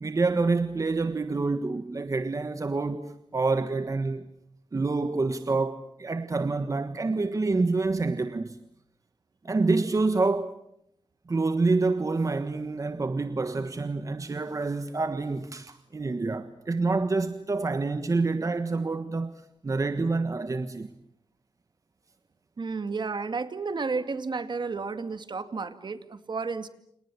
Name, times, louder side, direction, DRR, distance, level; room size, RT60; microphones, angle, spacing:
voice 1, 0.0-4.3 4.7-8.6 9.4-10.6 11.3-20.9, right 3 dB, 35° right, 1.4 m, -27 dB
voice 2, 22.6-26.7, right 4 dB, 55° right, 2.2 m, -32 dB
29.5 x 28.0 x 7.1 m
wide cardioid pair, 105°, 9 cm